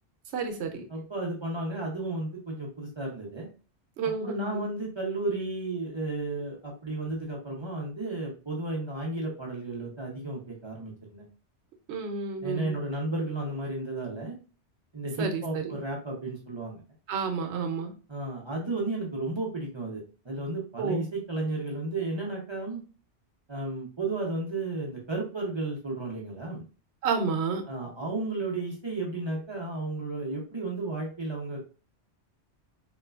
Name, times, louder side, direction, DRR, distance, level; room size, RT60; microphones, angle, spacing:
voice 1, 0.3-0.8 4.0-4.7 11.9-12.8 15.2-15.7 17.1-17.9 20.8-21.1 27.0-27.6, right 5 dB, 80° right, 5 dB, 0.9 m, -30 dB
voice 2, 0.9-3.5 4.0-11.2 12.4-14.3 14.9-16.8 18.1-22.8 23.5-26.7 27.7-31.6, right 2 dB, 30° right, -2 dB, 0.5 m, -33 dB
3.0 x 2.1 x 2.3 m, 0.36 s
omnidirectional pair, 1.1 m